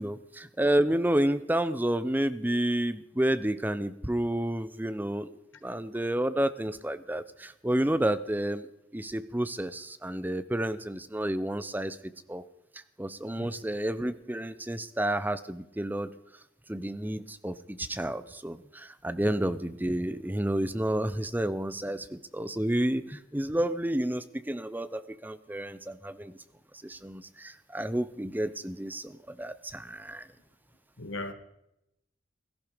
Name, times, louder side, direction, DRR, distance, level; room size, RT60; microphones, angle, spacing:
voice 1, 0.0-5.3 5.6-8.7 8.9-12.0 12.3-12.4 13.0-16.1 16.7-26.4 26.8-30.3, right 1 dB, 10° right, 13 dB, 0.7 m, -30 dB
voice 2, 31.0-31.3, left 2 dB, 90° left, 8 dB, 1.9 m, -38 dB
17.0 x 14.0 x 5.1 m, 0.84 s
head